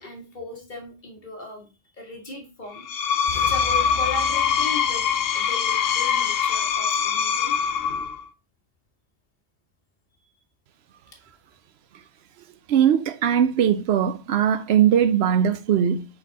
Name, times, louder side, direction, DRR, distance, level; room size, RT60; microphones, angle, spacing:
voice 1, 0.0-1.7 1.9-2.9 3.3-5.1 5.3-7.6, left 2 dB, 40° left, 1.8 m, -37 dB
Screech, 2.7-8.2, left 7 dB, 60° left, 0.7 m, -23 dB
sound 1, 3.3-5.5, left 5 dB, 80° left, 1.0 m, -38 dB
voice 2, 12.7-16.1, right 9 dB, 65° right, 0.8 m, -20 dB
5.5 x 4.3 x 4.0 m
omnidirectional pair, 1.3 m